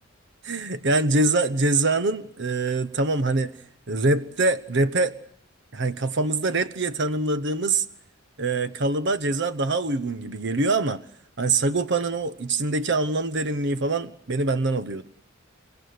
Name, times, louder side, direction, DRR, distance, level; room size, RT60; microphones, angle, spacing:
voice 1, 0.4-3.5 3.9-5.2 5.7-7.9 8.4-11.0 11.4-15.0, right 2 dB, 60° right, 14 dB, 1.0 m, -24 dB
30.0 x 16.5 x 9.5 m, 0.62 s
head